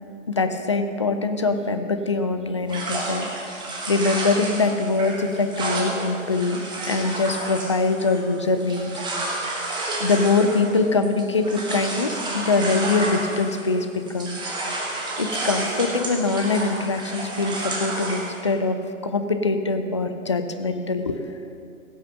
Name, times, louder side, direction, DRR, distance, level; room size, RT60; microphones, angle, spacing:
voice 1, 0.3-3.3 3.5-6.6 6.9-9.0 10.0-14.5 15.2-18.8 19.0-21.2, left 3 dB, 25° left, 8 dB, 0.4 m, -23 dB
sound 1, 2.7-13.8 14.1-18.4, right 2 dB, 10° right, 1.4 m, -30 dB
16.5 x 6.5 x 6.6 m, 2.5 s
figure-of-eight pair, 120°, 41 cm